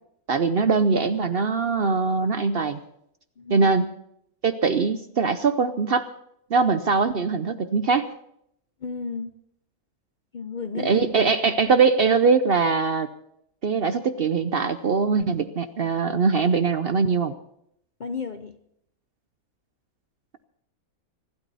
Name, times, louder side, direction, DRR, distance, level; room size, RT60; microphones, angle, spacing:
voice 1, 0.3-2.8 3.5-3.9 4.4-6.1 6.5-8.1 10.8-13.1 13.6-17.3, right 4 dB, 50° right, 11 dB, 0.7 m, -22 dB
voice 2, 3.4-3.7 8.8-9.4 10.3-11.0 18.0-18.6, left 5 dB, 45° left, 9 dB, 0.6 m, -33 dB
24.5 x 12.0 x 4.1 m, 0.73 s
omnidirectional pair, 1.5 m